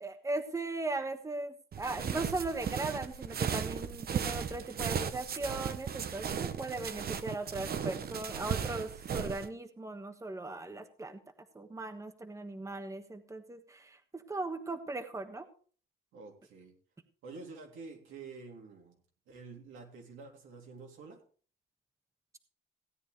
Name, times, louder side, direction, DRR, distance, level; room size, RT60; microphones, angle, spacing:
voice 1, 0.0-11.2 11.5-15.4, right 2 dB, 15° right, 7 dB, 1.3 m, -38 dB
sound 1, 1.7-9.5, right 7 dB, 50° right, 0.9 m, -36 dB
voice 2, 16.1-16.7 17.2-19.0 19.3-21.2, right 4 dB, 90° right, 0 dB, 3.3 m, -48 dB
16.5 x 9.3 x 3.4 m, 0.42 s
cardioid pair, 90°, 20 cm